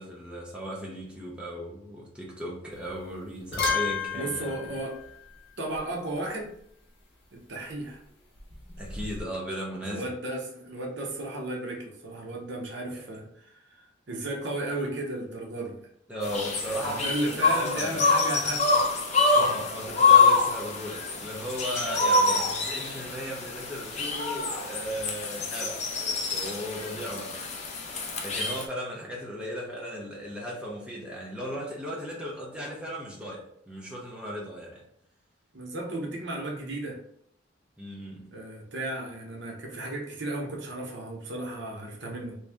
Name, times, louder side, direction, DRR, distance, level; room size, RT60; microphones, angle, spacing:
voice 1, 0.0-4.8 8.8-10.1 12.9-13.0 16.1-18.1 19.3-27.7 28.2-34.8 37.8-38.4, equal, 5° right, -4 dB, 0.6 m, -36 dB
sound 1, 2.7-3.0 3.3-5.9 8.4-9.3, left 5 dB, 60° left, 1.2 m, -33 dB
voice 2, 4.1-5.0 5.6-6.5 7.3-8.0 9.8-13.8 14.1-15.8 16.7-18.8 35.5-37.0 38.3-42.4, right 1 dB, 60° right, 0 dB, 0.8 m, -34 dB
sound 2, 16.2-28.7, left 4 dB, 35° left, 0.5 m, -26 dB
3.1 x 2.7 x 3.4 m, 0.70 s
head